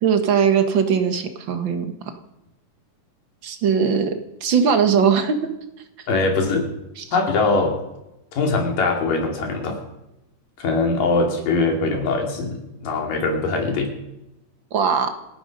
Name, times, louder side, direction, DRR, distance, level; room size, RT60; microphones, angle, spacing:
voice 1, 0.0-1.9 3.4-5.4 7.0-7.1 14.7-15.1, right 7 dB, 50° right, 7 dB, 1.5 m, -20 dB
voice 2, 6.1-6.7 7.1-7.8 8.3-9.8 10.6-13.9, left 3 dB, 80° left, 2 dB, 4.3 m, -22 dB
28.0 x 9.6 x 5.3 m, 0.92 s
omnidirectional pair, 3.8 m